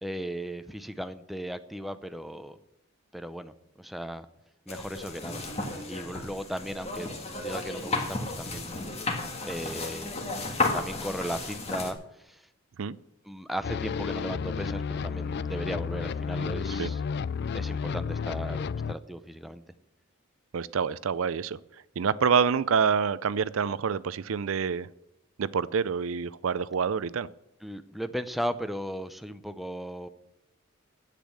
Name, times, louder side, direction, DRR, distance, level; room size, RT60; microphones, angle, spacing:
voice 1, 0.0-2.6 3.1-4.3 4.7-5.4 5.9-7.1 7.4-9.0 9.4-10.1 10.7-12.5 13.2-17.0 17.5-19.6 27.6-30.1, equal, ahead, 10 dB, 0.5 m, -36 dB
sound 1, 4.7-11.9, left 3 dB, 30° left, 1.8 m, -33 dB
sound 2, 13.6-18.9, left 6 dB, 50° left, 0.4 m, -32 dB
voice 2, 20.5-21.6 22.0-24.9 25.4-27.3, right 6 dB, 70° right, 18 dB, 0.4 m, -27 dB
10.5 x 8.4 x 7.6 m, 0.86 s
head